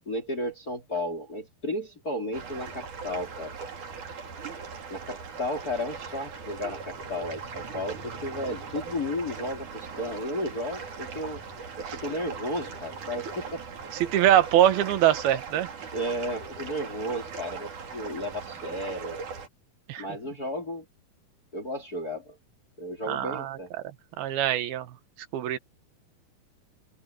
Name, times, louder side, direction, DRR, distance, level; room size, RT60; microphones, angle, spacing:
voice 1, 0.1-3.5 4.9-11.4 11.8-13.6 15.9-19.2 20.0-20.9 21.5-22.4 22.8-23.7, left 1 dB, 25° left, 3.8 m, -33 dB
sound 1, 2.3-19.5, right 5 dB, 55° right, 4.6 m, -39 dB
voice 2, 14.0-15.7 19.9-20.0 23.1-23.6 24.2-24.9 25.3-25.6, right 12 dB, 80° right, 3.2 m, -23 dB
open air
omnidirectional pair, 4.4 m